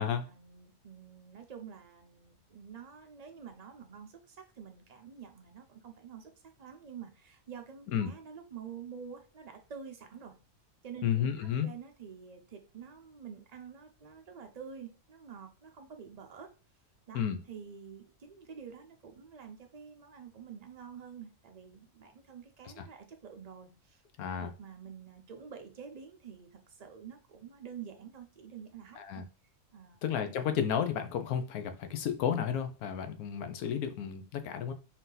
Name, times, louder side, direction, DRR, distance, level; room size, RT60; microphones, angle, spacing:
voice 1, 0.0-6.3 6.6-10.3 10.8-16.5 17.1-24.0 24.3-29.2 29.7-30.0, right 7 dB, 45° right, 0.5 m, -48 dB
voice 2, 11.0-11.7 17.1-17.4 24.2-24.5 29.0-29.2 30.0-34.7, left 8 dB, 90° left, 1.1 m, -32 dB
4.3 x 2.7 x 3.8 m
omnidirectional pair, 1.5 m